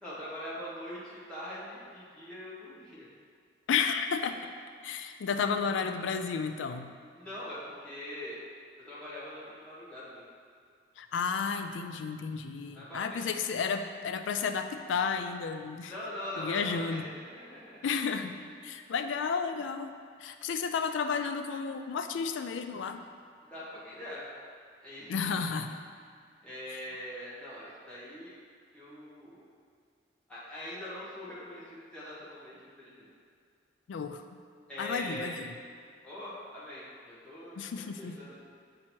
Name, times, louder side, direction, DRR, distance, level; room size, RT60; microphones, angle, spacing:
voice 1, 0.0-3.1 7.1-8.4 8.9-10.2 12.7-13.3 15.8-17.8 23.4-24.3 24.8-25.4 26.4-28.3 28.7-29.5 30.3-33.1 34.7-35.4 36.0-38.4, left 1 dB, 5° left, -10 dB, 1.3 m, -42 dB
voice 2, 3.7-4.4 4.8-6.9 11.0-15.9 16.4-17.1 17.8-19.9 20.2-23.0 25.1-25.9 33.9-34.2 34.8-35.3 37.6-38.1, left 6 dB, 85° left, 8 dB, 0.3 m, -32 dB
7.3 x 2.9 x 4.4 m, 2.2 s
head